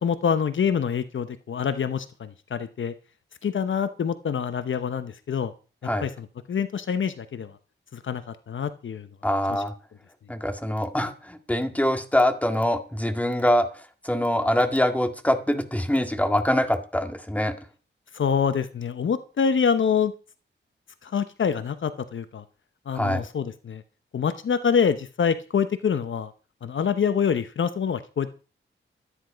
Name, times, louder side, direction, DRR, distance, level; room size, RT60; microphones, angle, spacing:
voice 1, 0.0-2.9 3.4-5.5 6.0-7.5 7.9-9.1 18.1-20.1 21.0-22.4 22.9-23.8 24.1-26.3 26.6-28.3, left 7 dB, 70° left, 12 dB, 0.9 m, -26 dB
voice 2, 9.2-9.7 10.3-13.7 14.0-17.5 22.9-23.3, left 1 dB, 5° left, 7 dB, 2.0 m, -24 dB
13.0 x 9.8 x 5.1 m, 0.37 s
wide cardioid pair, 105°, 21 cm